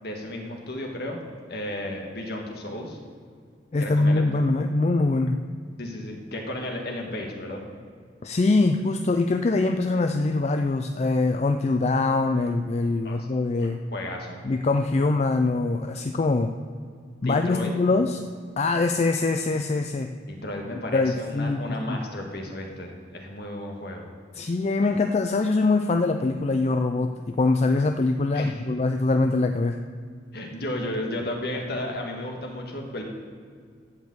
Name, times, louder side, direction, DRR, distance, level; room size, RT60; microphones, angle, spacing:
voice 1, 0.0-1.2 1.5-3.0 3.8-4.3 5.8-7.6 13.0-13.2 13.6-14.4 17.2-17.8 20.3-24.1 28.3-28.6 30.3-33.0, left 1 dB, 60° left, 1 dB, 1.8 m, -33 dB
voice 2, 3.7-5.4 8.2-13.8 14.4-16.5 17.2-18.2 18.6-20.1 20.9-21.6 21.9-22.0 24.4-29.8, left 3 dB, 35° left, 6 dB, 0.4 m, -23 dB
12.0 x 5.3 x 7.8 m, 2.1 s
head